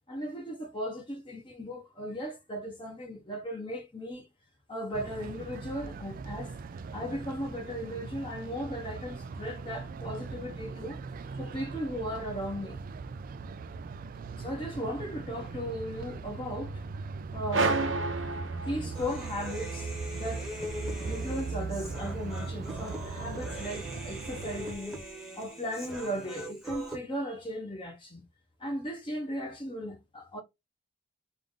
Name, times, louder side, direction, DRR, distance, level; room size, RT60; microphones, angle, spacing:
voice 1, 0.1-4.3 4.7-11.0 11.3-12.8 14.4-16.9 17.3-18.0 18.5-19.9 20.2-20.5 21.1-25.0 25.4-28.2 28.6-30.4, equal, 25° left, 0.9 m, -37 dB
sound 1, 4.9-24.7, right 4 dB, 45° right, 0.3 m, -39 dB
sound 2, 17.5-19.3, right 3 dB, 80° right, 0.8 m, -30 dB
Human voice, 18.9-27.0, equal, ahead, 1.0 m, -41 dB
3.5 x 2.5 x 3.7 m
head